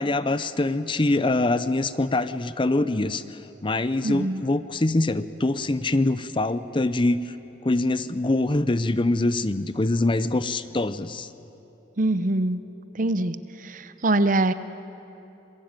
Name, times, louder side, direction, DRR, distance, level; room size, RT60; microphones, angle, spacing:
voice 1, 0.0-7.3 7.6-11.3, left 2 dB, 30° left, 14 dB, 0.6 m, -24 dB
voice 2, 4.0-4.4 12.0-12.6 12.9-13.4 13.6-14.5, right 2 dB, 45° right, 13 dB, 0.8 m, -23 dB
26.5 x 20.5 x 9.0 m, 3.0 s
head